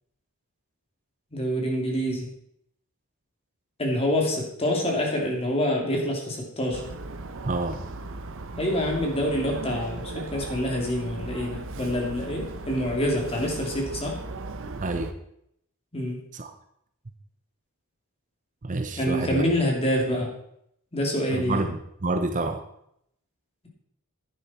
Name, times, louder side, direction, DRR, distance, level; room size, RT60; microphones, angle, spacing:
voice 1, 1.3-2.3 3.8-6.8 8.6-14.2 15.9-16.2 18.9-20.3 20.9-21.6, equal, 30° left, 0 dB, 2.8 m, -26 dB
sound 1, 6.7-15.1, right 2 dB, 65° right, 0.8 m, -37 dB
voice 2, 7.4-7.8 14.8-15.1 16.3-16.5 18.6-19.4 21.3-22.6, right 2 dB, 35° right, 7 dB, 0.8 m, -28 dB
10.5 x 10.0 x 4.3 m, 0.73 s
head